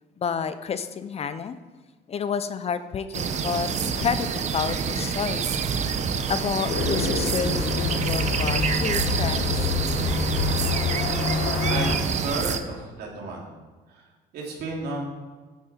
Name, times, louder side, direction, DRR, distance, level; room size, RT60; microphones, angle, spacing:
voice 1, 0.2-1.6 2.1-5.5 6.3-9.7, left 6 dB, 40° left, 12 dB, 0.6 m, -30 dB
sound 1, 3.1-12.6, right 6 dB, 45° right, 0.8 m, -28 dB
sound 2, 6.7-11.9, left 3 dB, 75° left, 1.8 m, -26 dB
voice 2, 11.7-13.5 13.9-15.0, right 2 dB, 70° right, -2 dB, 3.1 m, -33 dB
9.3 x 8.7 x 4.4 m, 1.4 s
cardioid pair, 110°, 17 cm